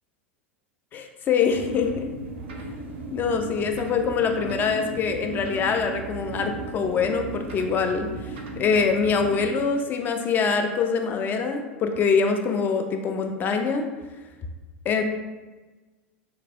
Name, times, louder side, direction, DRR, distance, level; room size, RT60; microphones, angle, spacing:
voice 1, 0.9-2.1 3.1-13.9 14.9-15.0, left 5 dB, 30° left, 5 dB, 0.3 m, -24 dB
sound 1, 1.5-9.5, right 2 dB, 65° right, 0.4 m, -36 dB
3.0 x 2.1 x 2.7 m, 1.2 s
figure-of-eight pair, 85°, 7 cm